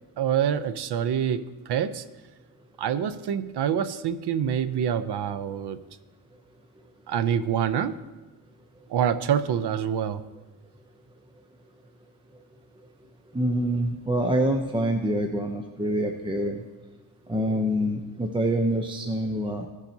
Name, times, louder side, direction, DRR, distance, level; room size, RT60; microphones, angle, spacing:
voice 1, 0.2-2.0 2.8-5.8 7.1-8.0 8.9-10.2, right 8 dB, 70° right, 13 dB, 0.6 m, -26 dB
voice 2, 13.3-16.6 17.3-19.7, right 1 dB, 10° right, 3 dB, 0.5 m, -26 dB
16.0 x 7.3 x 2.7 m, 1.2 s
wide cardioid pair, 130°, 42 cm